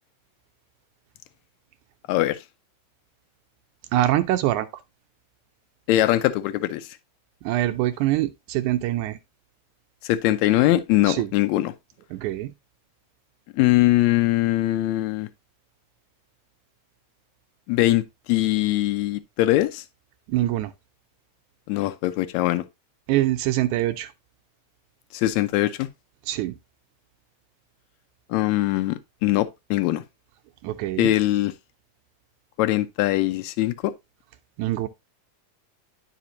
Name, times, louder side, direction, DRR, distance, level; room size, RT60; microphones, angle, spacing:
voice 1, 2.1-2.4 5.9-6.9 10.0-11.7 13.5-15.3 17.7-19.8 21.7-22.6 25.1-25.9 28.3-30.0 31.0-31.5 32.6-33.9, left 16 dB, 80° left, 1.7 m, -22 dB
voice 2, 3.9-4.7 7.4-9.2 11.1-11.3 12.1-12.5 20.3-20.7 23.1-24.1 26.3-26.6 30.6-31.1 34.6-34.9, right 14 dB, 80° right, 1.8 m, -24 dB
10.5 x 5.1 x 2.7 m
omnidirectional pair, 3.9 m